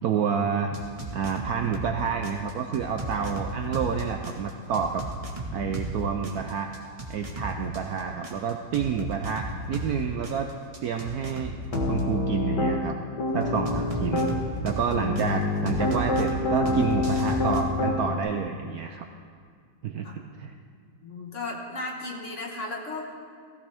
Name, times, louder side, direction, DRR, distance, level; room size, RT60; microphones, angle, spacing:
voice 1, 0.0-0.8 1.1-5.1 5.5-6.7 7.1-10.5 10.8-11.6 11.8-13.0 13.3-14.3 14.6-19.1 19.8-20.5, right 7 dB, 70° right, 4 dB, 0.9 m, -29 dB
sound 1, 0.7-1.9 2.2-5.9 6.2-9.9 10.2-12.0 13.7-15.2 15.7-17.6, right 1 dB, 20° right, 1.1 m, -34 dB
Piano, 11.7-12.8 13.2-14.3 15.0-18.2, left 3 dB, 65° left, 1.8 m, -26 dB
voice 2, 21.0-23.1, left 2 dB, 45° left, 0 dB, 1.5 m, -35 dB
16.5 x 15.0 x 3.5 m, 2.1 s
omnidirectional pair, 2.0 m